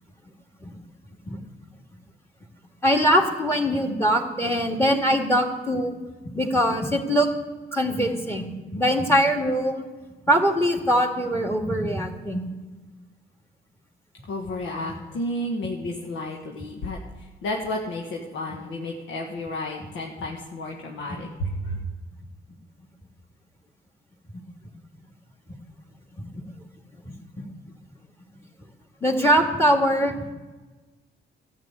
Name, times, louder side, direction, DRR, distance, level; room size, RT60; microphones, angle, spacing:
voice 1, 2.8-6.0 6.2-7.3 7.7-9.8 10.3-12.5 26.2-26.4 27.1-27.5 29.0-30.2, equal, 10° left, 3 dB, 2.0 m, -22 dB
voice 2, 14.3-21.8, left 1 dB, 85° left, 0 dB, 1.4 m, -32 dB
12.5 x 7.3 x 8.9 m, 1.3 s
cardioid pair, 90°, 20 cm